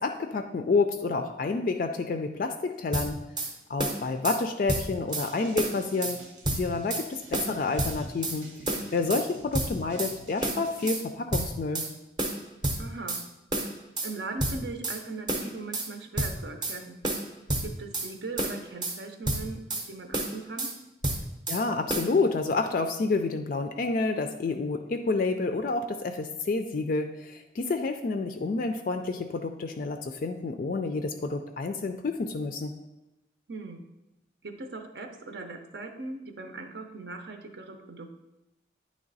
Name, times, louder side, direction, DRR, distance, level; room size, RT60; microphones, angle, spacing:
voice 1, 0.0-3.2 3.7-6.2 6.5-8.5 8.9-11.8 21.5-32.7, left 3 dB, 45° left, 6 dB, 0.3 m, -29 dB
sound 1, 2.9-3.5 3.8-4.4 4.7-5.3 5.6-6.2 6.4-7.1 7.3-8.4 8.7-9.3 9.5-10.1 10.4-11.0 11.3-11.9 12.2-13.2 13.5-14.1 14.4-15.0 15.3-15.9 16.2-16.8 17.0-18.1 18.4-19.0 19.3-19.9 20.1-20.7 21.0-21.6 21.9-22.1, right 1 dB, 25° right, 0.6 m, -30 dB
sound 2, 5.1-11.0, right 2 dB, 85° right, 1.1 m, -49 dB
voice 2, 12.8-13.2 14.0-17.0 17.6-19.6 19.9-20.7 33.5-33.8 34.4-38.1, right 3 dB, 65° right, 5 dB, 0.7 m, -39 dB
9.5 x 3.2 x 3.9 m, 0.96 s
head